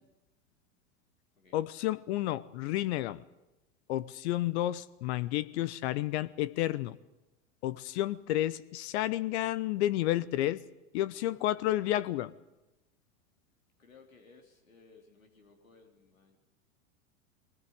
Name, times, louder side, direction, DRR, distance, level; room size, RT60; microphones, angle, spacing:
voice 1, 1.5-3.2 3.9-6.9 7.6-10.6 10.9-12.3, left 14 dB, 55° left, 17 dB, 0.9 m, -31 dB
voice 2, 13.8-16.4, left 4 dB, 90° left, 3 dB, 3.4 m, -59 dB
21.0 x 19.0 x 9.4 m, 1.0 s
hypercardioid pair, 95°, 39 cm